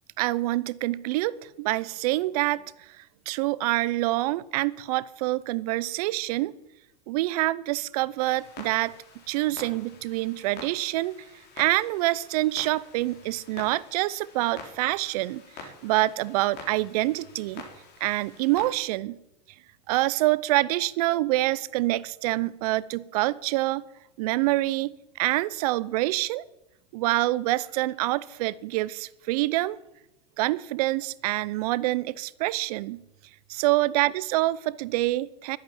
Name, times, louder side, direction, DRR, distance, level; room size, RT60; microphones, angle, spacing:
voice 1, 0.2-2.6 3.3-6.5 7.1-8.9 9.3-11.1 11.6-15.4 15.8-17.6 18.0-19.2 19.9-23.8 24.2-26.4 26.9-29.8 30.4-33.0 33.5-35.6, right 18 dB, 65° right, 20 dB, 0.6 m, -26 dB
Clock, 8.2-18.7, left 4 dB, 50° left, 4.0 m, -47 dB
12.0 x 8.3 x 9.0 m, 0.89 s
hypercardioid pair, 95°, 21 cm